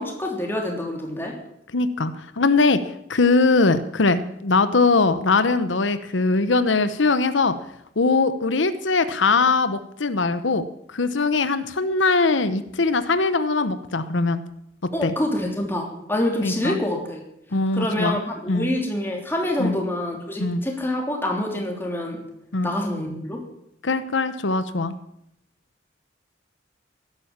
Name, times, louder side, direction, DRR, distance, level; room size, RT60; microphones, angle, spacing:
voice 1, 0.0-1.3 14.9-17.2 17.7-22.2 22.6-23.4, left 1 dB, 10° left, 0 dB, 3.3 m, -26 dB
voice 2, 1.7-2.8 3.1-7.6 8.0-14.4 15.0-15.1 16.4-16.8 17.5-18.2 18.5-18.7 19.6-19.8 20.4-20.6 22.5-22.7 23.8-24.9, left 3 dB, 90° left, 12 dB, 1.0 m, -21 dB
16.5 x 12.0 x 7.4 m, 0.76 s
head